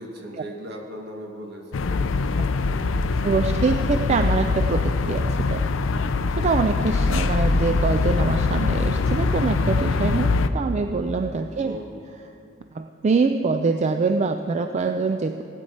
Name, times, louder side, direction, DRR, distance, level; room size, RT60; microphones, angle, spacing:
voice 1, 0.0-2.3 3.1-3.3 11.5-11.9, equal, 55° right, 2 dB, 1.3 m, -39 dB
sound 1, 1.7-10.5, left 3 dB, 75° left, 0.5 m, -23 dB
voice 2, 3.2-5.6 6.4-11.8 12.7-15.4, right 4 dB, 35° right, 7 dB, 0.3 m, -24 dB
16.0 x 8.8 x 4.2 m, 2.6 s
head